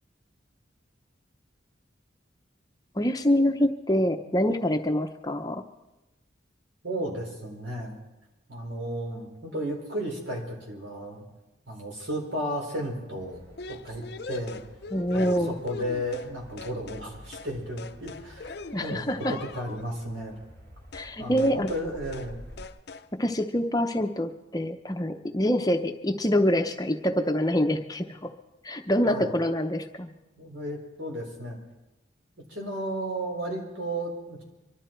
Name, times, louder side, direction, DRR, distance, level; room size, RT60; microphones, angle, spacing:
voice 1, 2.9-5.6 14.9-15.6 18.7-19.4 20.9-21.7 23.1-28.3 28.6-30.1, equal, 20° left, 6 dB, 0.7 m, -25 dB
voice 2, 6.8-8.0 8.5-11.2 11.7-13.4 13.8-14.6 15.1-20.4 21.2-22.5 29.1-29.4 30.3-31.6 32.5-34.4, right 1 dB, 75° right, 0 dB, 4.3 m, -34 dB
sound 1, 13.2-22.7, equal, 55° right, 5.6 m, -50 dB
sound 2, 13.6-16.3 16.6-17.1 17.3-17.5 17.8-19.9 20.9-21.1 21.4-21.9 22.1-22.3 22.6-23.1, left 3 dB, 55° left, 0.6 m, -41 dB
24.0 x 12.5 x 4.5 m, 1.0 s
head